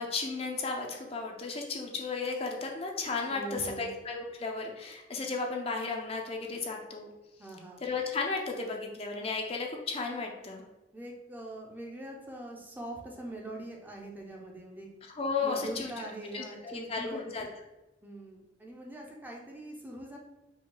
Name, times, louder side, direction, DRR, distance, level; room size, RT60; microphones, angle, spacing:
voice 1, 0.0-7.1 7.8-10.6 15.1-16.1 16.3-17.5, left 4 dB, 35° left, 1 dB, 0.5 m, -34 dB
voice 2, 3.0-3.9 7.4-7.8 10.9-14.9 15.4-17.2 18.0-20.2, right 1 dB, 10° right, -1 dB, 0.6 m, -43 dB
5.1 x 2.2 x 3.8 m, 1.0 s
head